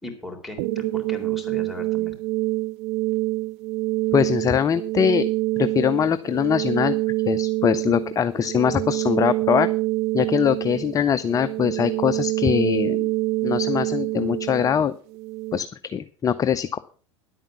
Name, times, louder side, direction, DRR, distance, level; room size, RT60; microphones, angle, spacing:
voice 1, 0.0-2.2, left 1 dB, ahead, 6 dB, 3.7 m, -38 dB
sound 1, 0.6-15.6, right 21 dB, 55° right, 0.8 m, -26 dB
voice 2, 4.1-5.3 5.6-7.0 7.3-9.7 10.1-13.1 13.4-14.9 15.5-16.8, left 8 dB, 20° left, 13 dB, 0.6 m, -22 dB
10.5 x 8.8 x 6.0 m, 0.40 s
figure-of-eight pair, 80°, 16 cm